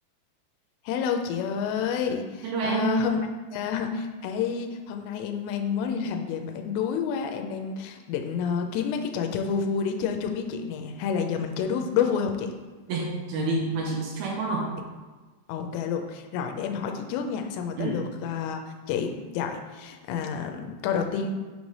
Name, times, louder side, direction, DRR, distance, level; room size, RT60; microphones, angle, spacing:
voice 1, 0.9-3.2 3.5-12.5 15.5-18.6 18.9-21.3, left 7 dB, 90° left, 4 dB, 2.8 m, -29 dB
voice 2, 2.4-3.0 12.9-14.7 17.8-18.0, right 3 dB, 80° right, -2 dB, 2.3 m, -28 dB
6.4 x 3.2 x 5.3 m, 1.3 s
omnidirectional pair, 4.9 m